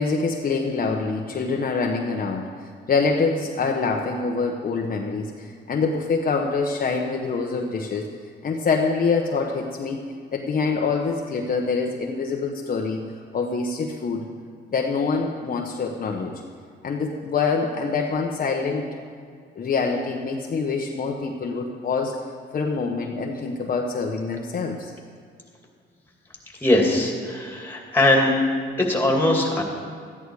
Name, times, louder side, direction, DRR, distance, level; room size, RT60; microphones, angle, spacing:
voice 1, 0.0-2.4 2.9-8.1 8.4-10.0 10.3-13.0 13.3-14.3 14.7-16.3 16.8-18.9 19.6-22.1 22.5-24.9, left 4 dB, 45° left, 1 dB, 1.0 m, -25 dB
voice 2, 26.6-28.3 28.8-29.6, left 1 dB, 10° left, 0 dB, 2.5 m, -20 dB
13.5 x 10.5 x 4.8 m, 2.2 s
cardioid pair, 90°, 20 cm